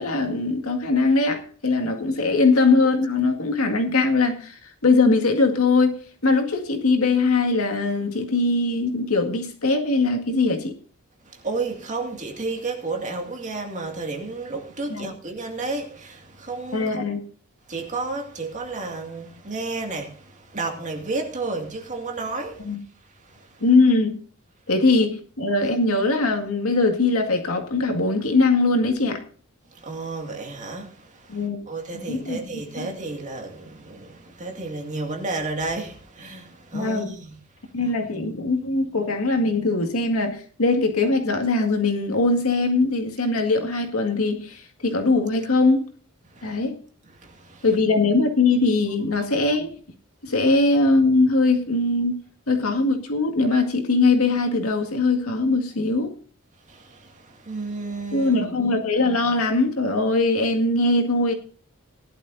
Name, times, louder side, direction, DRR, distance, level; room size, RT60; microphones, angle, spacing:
voice 1, 0.0-10.8 14.9-15.1 16.7-17.2 22.6-22.8 23.6-24.2 24.7-29.2 31.3-32.4 32.8-32.9 36.7-37.1 37.7-45.8 46.4-46.8 47.6-49.7 50.2-52.2 52.5-56.1 58.1-61.3, left 3 dB, 80° left, 2.0 m, -21 dB
voice 2, 11.3-17.0 17.7-22.8 23.3-23.5 29.7-37.3 46.4-46.6 47.2-47.6 56.7-58.6, right 3 dB, 35° right, 2.2 m, -32 dB
18.5 x 11.5 x 2.7 m
head